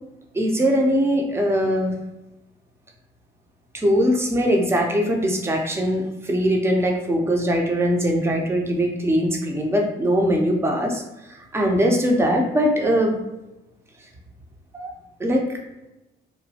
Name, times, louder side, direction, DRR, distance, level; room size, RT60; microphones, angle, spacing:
voice 1, 0.3-1.9 3.7-13.2 14.7-14.9 15.2-15.6, equal, 10° right, 1 dB, 0.5 m, -21 dB
3.0 x 2.1 x 2.7 m, 0.95 s
cardioid pair, 90°, 20 cm